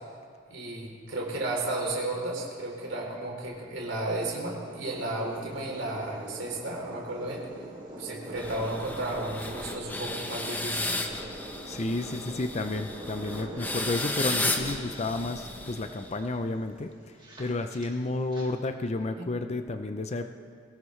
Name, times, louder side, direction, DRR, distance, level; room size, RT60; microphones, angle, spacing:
voice 1, 0.5-7.4 8.0-11.1 19.2-19.3, right 2 dB, 75° right, -1 dB, 3.4 m, -33 dB
sound 1, 4.6-18.5, right 1 dB, 25° right, 3.1 m, -44 dB
sound 2, 8.4-16.3, left 2 dB, 10° left, 1.0 m, -34 dB
voice 2, 11.6-16.9 17.4-20.3, left 2 dB, 35° left, 8 dB, 0.5 m, -31 dB
22.0 x 18.0 x 3.2 m, 2.1 s
head